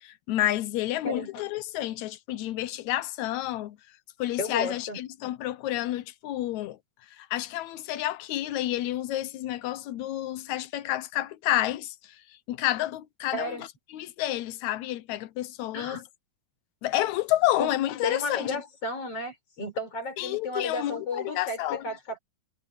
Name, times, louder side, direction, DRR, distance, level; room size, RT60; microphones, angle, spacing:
voice 1, 0.0-3.8 4.2-6.8 7.2-12.0 12.5-13.7 13.9-16.0 16.8-18.6 20.2-21.8, left 14 dB, 80° left, 2.1 m, -29 dB
voice 2, 4.4-5.0 13.3-13.6 15.7-16.0 17.6-17.7 18.0-22.2, left 2 dB, 50° left, 5.8 m, -33 dB
omnidirectional pair, 3.4 m